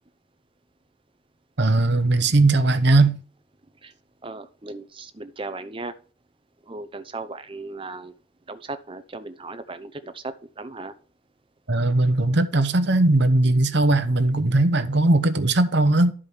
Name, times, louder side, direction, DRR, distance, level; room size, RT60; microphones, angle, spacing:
voice 1, 1.6-3.1 11.7-16.1, right 2 dB, 55° right, 0.9 m, -19 dB
voice 2, 4.2-5.9 6.6-8.1 8.5-10.9, right 3 dB, 25° right, 0.7 m, -36 dB
12.5 x 5.0 x 5.6 m
head